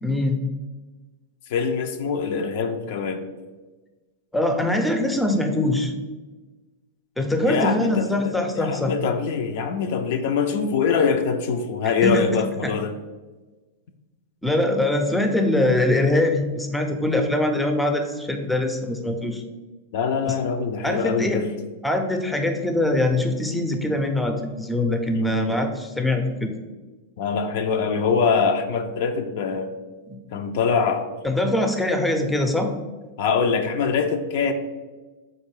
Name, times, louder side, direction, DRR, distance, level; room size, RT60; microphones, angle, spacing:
voice 1, 0.0-0.4 4.3-5.9 7.2-8.9 12.0-12.2 12.6-12.7 14.4-19.4 20.3-20.4 20.8-21.4 21.8-26.5 30.1-30.2 31.2-32.7, left 1 dB, 5° left, 5 dB, 0.5 m, -23 dB
voice 2, 1.5-3.3 7.5-12.9 19.9-21.5 25.1-25.6 27.2-29.7 30.3-31.1 33.2-34.5, left 5 dB, 65° left, 6 dB, 0.4 m, -24 dB
3.7 x 2.6 x 4.7 m, 1.2 s
hypercardioid pair, 115°, 0 cm